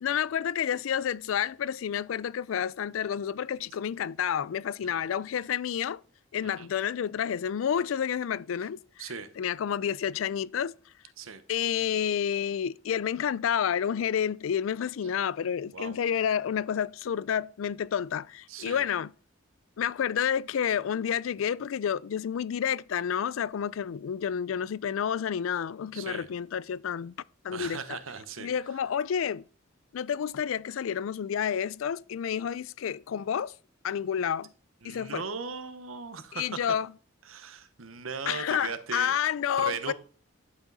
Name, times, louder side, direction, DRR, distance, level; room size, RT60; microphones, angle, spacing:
voice 1, 0.0-6.0 6.3-8.8 9.4-10.7 11.5-19.1 19.8-27.1 27.4-28.0 28.4-29.4 29.9-33.5 33.8-34.5 34.8-35.2 36.3-36.9 38.3-39.9, left 8 dB, 75° left, 0.4 m, -30 dB
voice 2, 18.5-18.8 25.9-26.3 27.5-28.5 34.8-36.6 37.3-39.1 39.6-39.9, right 5 dB, 90° right, 1.0 m, -38 dB
11.5 x 5.1 x 4.0 m
head